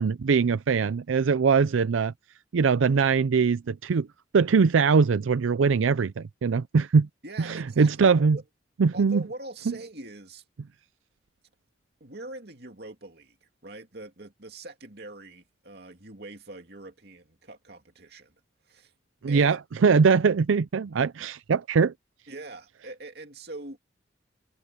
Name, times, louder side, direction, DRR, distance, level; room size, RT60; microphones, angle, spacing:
voice 1, 0.0-2.1 2.5-4.1 4.3-7.1 7.5-8.4 8.8-9.2 19.2-21.9, right 5 dB, 90° right, 0.5 m, -22 dB
voice 2, 7.2-8.4 8.9-10.4 12.0-18.3 18.6-18.9 19.3-19.6 22.3-23.8, right 2 dB, 55° right, 2.7 m, -43 dB
head